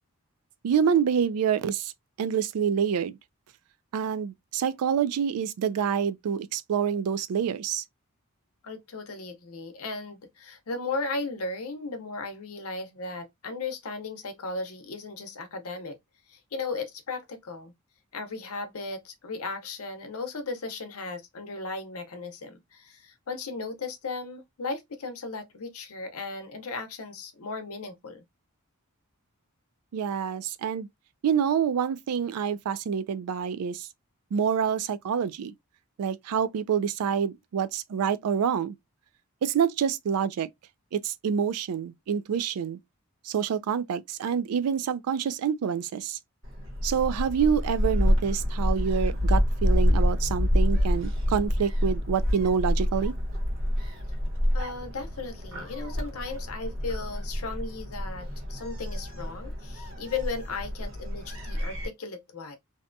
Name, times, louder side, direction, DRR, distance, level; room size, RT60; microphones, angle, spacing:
voice 1, 0.6-1.9 2.2-3.1 3.9-7.8 29.9-30.9 31.2-33.9 34.3-35.5 36.0-38.8 39.4-40.5 40.9-42.8 43.2-46.2 46.8-53.1, right 7 dB, 85° right, 0.3 m, -27 dB
voice 2, 8.6-16.0 16.3-17.7 18.1-28.2 54.5-62.6, left 3 dB, 75° left, 0.7 m, -36 dB
Gull seagull, 46.4-61.9, equal, 60° right, 1.0 m, -27 dB
2.7 x 2.2 x 2.5 m
head